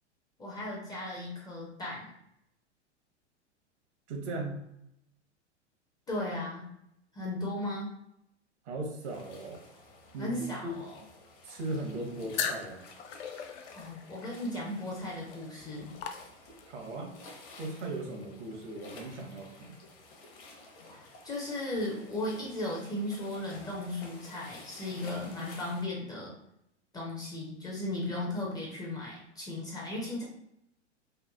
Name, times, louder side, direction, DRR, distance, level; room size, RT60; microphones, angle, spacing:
voice 1, 0.4-2.1 6.1-6.6 7.1-7.9 10.2-11.0 13.7-15.9 20.9-26.3 26.9-30.2, left 1 dB, 10° left, -4 dB, 0.4 m, -36 dB
voice 2, 4.1-4.6 8.7-9.6 10.1-10.7 11.4-12.8 16.7-17.1 17.6-19.7, right 2 dB, 70° right, 2 dB, 0.8 m, -38 dB
sound 1, 9.0-25.8, left 2 dB, 50° left, 0.8 m, -53 dB
sound 2, 12.3-16.8, left 6 dB, 75° left, 0.5 m, -39 dB
3.1 x 2.1 x 2.2 m, 0.79 s
hypercardioid pair, 110°, 35 cm